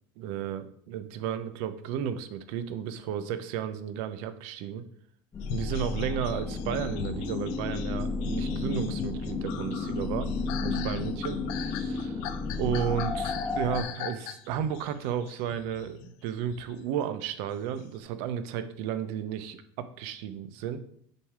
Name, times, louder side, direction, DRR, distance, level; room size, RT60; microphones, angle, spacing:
voice 1, 0.2-4.8 5.5-10.3 10.6-12.2 12.6-20.8, right 9 dB, 65° right, 11 dB, 0.8 m, -33 dB
sound 1, 5.3-13.8, left 4 dB, 25° left, 1.0 m, -32 dB
sound 2, 5.4-16.7 17.4-17.8, left 9 dB, 70° left, 0.7 m, -41 dB
6.8 x 4.9 x 4.8 m, 0.65 s
cardioid pair, 145°, 11 cm